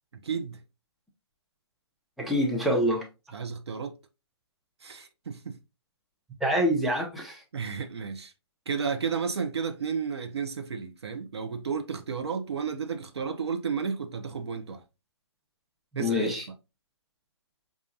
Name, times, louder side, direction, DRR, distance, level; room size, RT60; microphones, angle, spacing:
voice 1, 0.2-0.6 3.3-4.0 4.8-5.6 7.5-8.3 8.7-14.8 16.0-16.3, right 6 dB, 65° right, 0.6 m, -32 dB
voice 2, 2.2-3.1 6.4-7.4 15.9-16.4, equal, ahead, 0.6 m, -26 dB
5.4 x 2.4 x 2.5 m
figure-of-eight pair, 135°, 15 cm